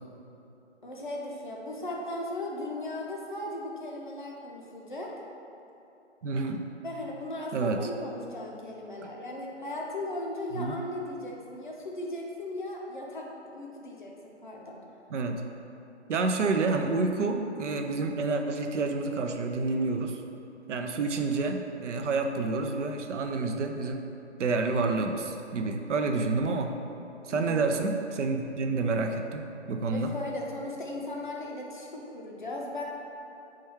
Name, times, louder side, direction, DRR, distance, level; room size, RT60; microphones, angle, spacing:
voice 1, 0.8-5.1 6.8-14.8 27.3-27.5 29.9-32.8, left 1 dB, 45° left, -2 dB, 0.4 m, -37 dB
voice 2, 6.2-6.6 7.5-7.9 10.5-10.8 15.1-15.4 16.1-20.2 20.7-24.1 24.4-26.8 27.2-30.1, right 3 dB, 85° right, 4 dB, 0.5 m, -29 dB
4.5 x 2.3 x 3.0 m, 2.9 s
hypercardioid pair, 165°, 35 cm